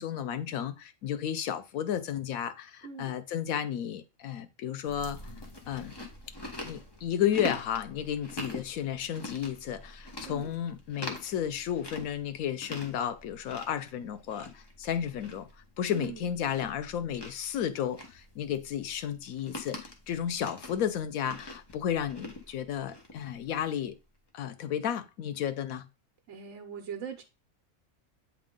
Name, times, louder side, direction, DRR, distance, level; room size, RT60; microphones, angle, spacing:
voice 1, 0.0-5.3 5.7-5.9 6.6-15.5 15.8-24.0 24.3-25.9, left 9 dB, 85° left, 1.1 m, -33 dB
Chewing mastication, 4.9-23.8, left 1 dB, 20° left, 1.0 m, -44 dB
voice 2, 15.9-16.3 26.3-27.2, right 8 dB, 65° right, 1.0 m, -41 dB
8.5 x 3.6 x 3.7 m
omnidirectional pair, 1.4 m